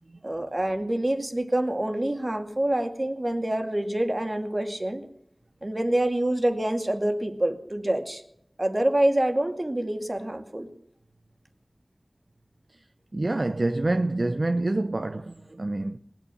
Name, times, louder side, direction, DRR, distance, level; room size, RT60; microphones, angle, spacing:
voice 1, 0.2-5.1 5.6-8.2 8.6-10.7, right 1 dB, 40° right, 2.2 m, -26 dB
voice 2, 13.1-16.0, right 2 dB, 60° right, 0.7 m, -26 dB
20.0 x 8.7 x 8.4 m
wide cardioid pair, 50°, 0 cm